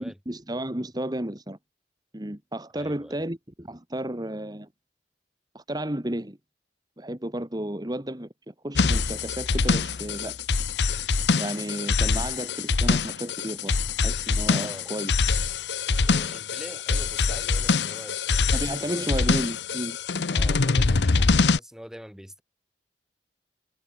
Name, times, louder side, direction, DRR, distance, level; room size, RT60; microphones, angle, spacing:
voice 1, 0.0-1.6 2.1-4.7 5.5-6.4 7.0-10.4 11.4-13.7 14.0-15.1 18.5-20.0, right 1 dB, 25° right, 1.8 m, -33 dB
voice 2, 2.7-3.3 14.5-14.9 16.1-18.2 18.7-19.1 20.3-22.4, equal, 5° right, 3.5 m, -44 dB
sound 1, 8.8-21.6, left 4 dB, 75° left, 0.8 m, -24 dB
head